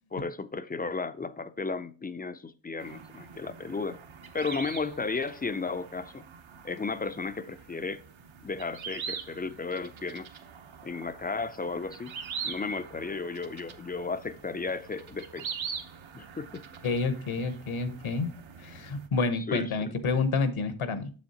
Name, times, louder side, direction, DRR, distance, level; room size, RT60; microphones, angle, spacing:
voice 1, 0.1-4.0 4.3-6.2 6.6-8.0 8.4-10.3 10.8-12.2 12.4-15.5 16.1-16.6 19.4-19.9, left 4 dB, 20° left, 0.3 m, -34 dB
sound 1, 2.8-19.1, right 7 dB, 70° right, 0.9 m, -43 dB
voice 2, 16.8-18.3 18.6-21.1, left 4 dB, 80° left, 1.0 m, -29 dB
7.1 x 7.1 x 2.8 m
wide cardioid pair, 95°, 48 cm